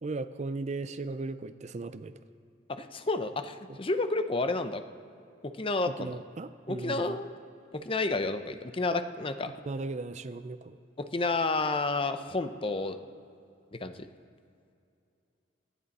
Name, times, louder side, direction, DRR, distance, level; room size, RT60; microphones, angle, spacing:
voice 1, 0.0-2.1 3.7-3.8 5.9-7.2 9.7-10.8, right 3 dB, 40° right, 13 dB, 0.4 m, -37 dB
voice 2, 2.7-4.8 5.4-6.2 6.7-7.3 7.7-9.5 11.0-13.0 13.7-14.1, left 3 dB, 30° left, 9 dB, 0.7 m, -30 dB
27.0 x 10.0 x 4.2 m, 2.6 s
head